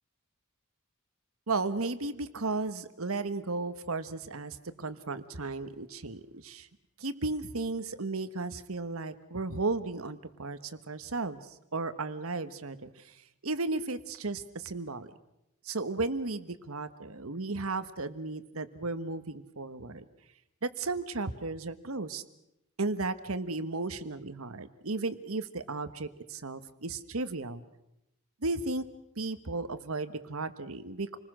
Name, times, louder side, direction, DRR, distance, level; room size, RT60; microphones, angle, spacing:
voice 1, 1.5-6.7 7.0-12.9 13.4-15.1 15.6-20.0 20.6-22.2 22.8-27.6 28.4-28.9 29.2-31.2, right 3 dB, 75° right, 12 dB, 1.3 m, -34 dB
28.5 x 20.0 x 6.3 m, 0.86 s
head